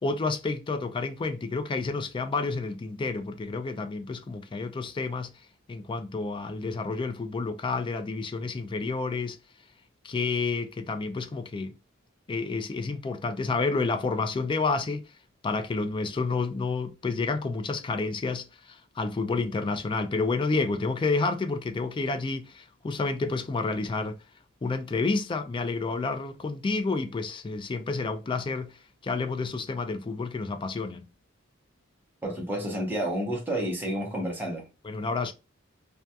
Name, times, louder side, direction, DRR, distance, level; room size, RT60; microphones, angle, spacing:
voice 1, 0.0-5.3 5.7-9.4 10.0-11.8 12.3-15.1 15.4-24.2 24.6-31.0 34.8-35.3, left 3 dB, 25° left, 0.3 m, -30 dB
voice 2, 32.2-34.7, right 1 dB, 10° right, 0.7 m, -30 dB
2.3 x 2.2 x 2.6 m
head